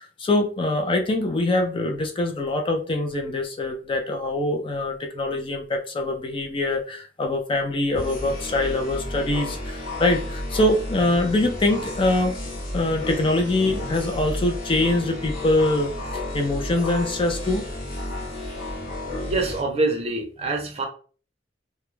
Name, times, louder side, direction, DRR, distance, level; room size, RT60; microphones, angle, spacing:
voice 1, 0.0-12.3 12.7-17.6, left 2 dB, 30° left, 3 dB, 0.4 m, -24 dB
sound 1, 7.9-19.6, left 1 dB, 50° left, 0.9 m, -32 dB
voice 2, 19.3-20.9, right 2 dB, 35° right, 2 dB, 0.6 m, -25 dB
2.3 x 2.1 x 3.0 m, 0.39 s
head